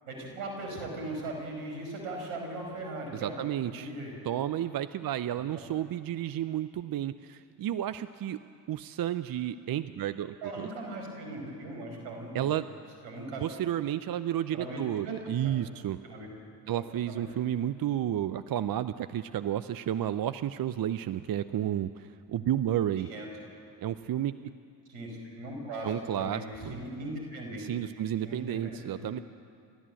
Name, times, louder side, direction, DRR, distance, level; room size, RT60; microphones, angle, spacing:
voice 1, 0.1-3.4 3.7-4.2 5.5-5.6 10.4-12.5 13.0-13.4 14.5-15.1 15.4-15.7 16.0-16.3 16.7-17.3 23.0-23.3 24.9-27.7 28.2-29.1, right 2 dB, 75° right, 2 dB, 5.5 m, -39 dB
voice 2, 3.1-3.9 4.2-8.4 8.7-10.7 12.3-12.7 13.4-16.0 16.7-23.1 23.8-24.5 25.8-26.8 27.6-29.2, right 11 dB, 45° right, 13 dB, 0.8 m, -32 dB
29.5 x 13.5 x 7.8 m, 2.4 s
hypercardioid pair, 50°, 49 cm